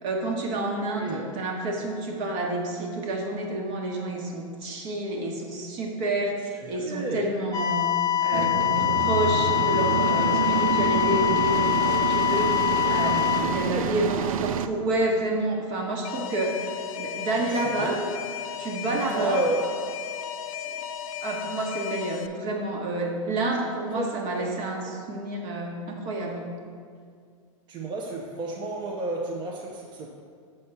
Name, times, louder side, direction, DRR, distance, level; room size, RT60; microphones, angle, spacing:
voice 1, 0.0-7.9 8.2-12.6 12.9-16.6 17.0-18.0 18.6-19.4 21.2-26.4, right 2 dB, 45° right, 0 dB, 1.4 m, -29 dB
voice 2, 6.6-7.3 13.4-13.9 17.5-18.1 19.1-19.7 23.9-24.0 24.4-24.5 24.8-25.0 27.7-30.1, right 2 dB, 25° right, -1 dB, 0.7 m, -31 dB
sound 1, 7.5-13.4, left 12 dB, 20° left, 0.6 m, -24 dB
sound 2, 8.3-14.7, right 8 dB, 80° right, 0.4 m, -28 dB
Alarm, 16.0-22.3, left 9 dB, 80° left, 0.4 m, -35 dB
6.6 x 4.3 x 5.7 m, 2.2 s
hypercardioid pair, 125°, 17 cm